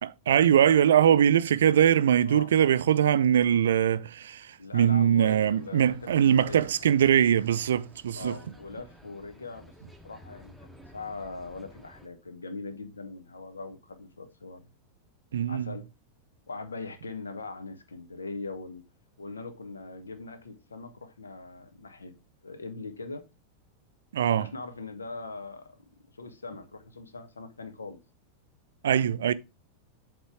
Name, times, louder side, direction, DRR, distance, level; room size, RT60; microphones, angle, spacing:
voice 1, 0.0-8.3 15.3-15.7 24.1-24.5 28.8-29.3, right 9 dB, 65° right, 0.4 m, -22 dB
voice 2, 4.6-6.7 8.2-9.7 10.0-10.5 10.9-14.6 15.5-15.9 16.5-18.8 19.2-22.1 22.4-23.2 24.2-25.8 26.2-28.0, left 3 dB, 75° left, 1.0 m, -41 dB
sound 1, 5.4-12.1, equal, ahead, 1.0 m, -53 dB
8.0 x 3.6 x 4.7 m
figure-of-eight pair, 90°, 0 cm